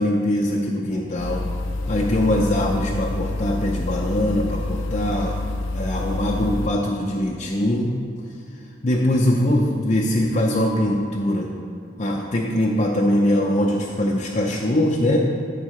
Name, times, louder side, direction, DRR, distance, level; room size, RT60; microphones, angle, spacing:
voice 1, 0.0-1.4 1.9-5.4 5.7-8.0 8.8-11.5 12.0-15.2, left 1 dB, 35° left, -2 dB, 0.6 m, -22 dB
sound 1, 1.2-6.7, left 2 dB, 85° left, 0.5 m, -28 dB
13.0 x 5.4 x 3.1 m, 2.5 s
head